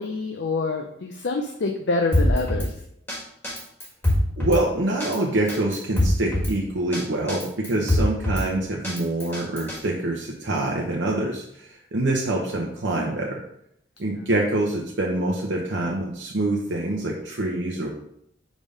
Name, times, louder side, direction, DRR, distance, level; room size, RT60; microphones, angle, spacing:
voice 1, 0.0-2.7 7.7-8.0 14.1-14.3, left 3 dB, 70° left, 4 dB, 0.5 m, -27 dB
Drum kit, 2.1-2.7 3.1-3.2 3.4-4.6 5.0-5.2 5.5-6.5 6.9-7.0 7.3-8.5 8.8-9.8, left 1 dB, 10° left, 1.5 m, -23 dB
voice 2, 4.4-13.4 14.0-17.9, right 1 dB, 75° right, -2 dB, 0.8 m, -25 dB
5.1 x 3.6 x 5.3 m, 0.74 s
head